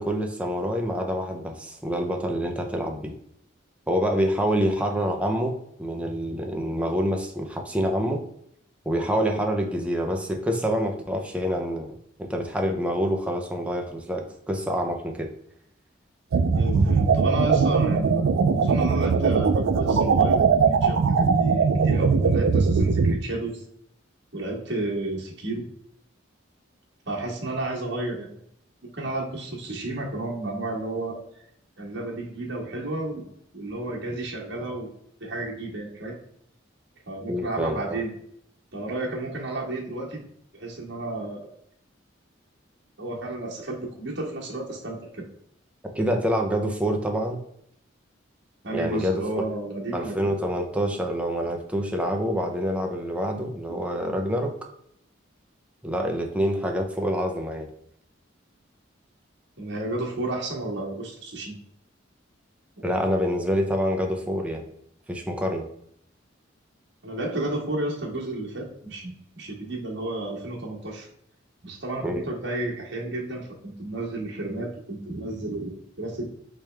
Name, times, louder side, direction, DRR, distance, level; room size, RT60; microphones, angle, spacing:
voice 1, 0.0-3.1 3.9-5.5 5.8-8.2 8.9-15.3 37.3-38.0 46.0-47.4 48.7-49.1 49.9-54.5 55.8-57.7 62.8-64.6 65.1-65.7 72.0-72.2, equal, 5° right, 2 dB, 0.6 m, -26 dB
sound 1, 16.3-23.1, right 5 dB, 85° right, 0.4 m, -20 dB
voice 2, 16.5-23.6 24.3-25.6 27.1-28.3 28.9-31.2 31.8-33.2 33.5-34.9 35.2-36.2 37.1-38.1 38.7-40.2 40.5-41.5 43.0-45.2 48.6-50.2 59.6-61.6 67.0-71.1 71.6-76.3, right 2 dB, 60° right, -2 dB, 1.4 m, -32 dB
5.1 x 3.2 x 3.3 m, 0.72 s
head